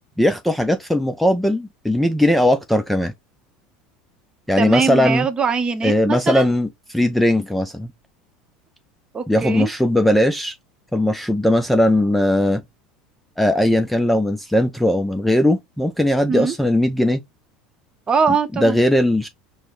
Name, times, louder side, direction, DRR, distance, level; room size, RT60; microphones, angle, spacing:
voice 1, 0.2-3.1 4.5-5.3 5.8-7.9 9.3-10.6 10.9-12.6 13.4-17.2 18.5-19.3, left 1 dB, 5° left, 0.4 m, -18 dB
voice 2, 4.6-6.5 9.1-9.7 16.3-16.5 18.1-18.8, right 5 dB, 25° right, 0.8 m, -22 dB
4.6 x 2.1 x 2.5 m
hypercardioid pair, 85°, 3 cm